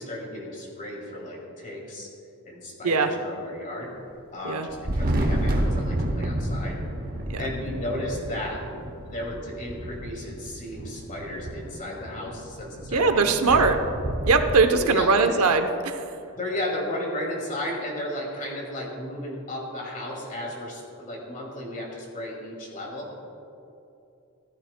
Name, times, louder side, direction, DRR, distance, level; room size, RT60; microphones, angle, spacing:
voice 1, 0.0-2.1 2.5-3.9 4.3-6.8 7.4-8.6 9.0-13.6 14.7-15.3 16.3-23.1, left 1 dB, 40° left, -2 dB, 2.3 m, -34 dB
Thunder, 4.7-14.5, right 1 dB, 45° right, 0.9 m, -30 dB
voice 2, 12.9-13.8 14.3-15.9, right 4 dB, 80° right, 7 dB, 0.8 m, -20 dB
14.5 x 13.5 x 2.2 m, 2.8 s
head